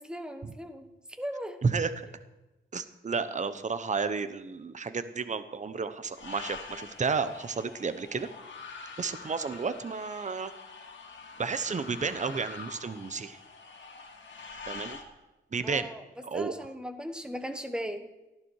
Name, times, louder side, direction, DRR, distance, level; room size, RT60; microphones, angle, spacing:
voice 1, 0.0-1.6 15.6-16.0 16.3-18.0, equal, 5° right, 7 dB, 1.3 m, -38 dB
voice 2, 1.6-2.1 2.7-8.3 9.0-10.5 11.4-13.4 14.7-15.0 15.5-15.9 16.2-16.5, right 5 dB, 40° right, 12 dB, 0.9 m, -32 dB
sound 1, 6.1-15.0, left 4 dB, 70° left, 2.3 m, -45 dB
18.5 x 14.0 x 4.7 m, 1.1 s
wide cardioid pair, 175°, 20 cm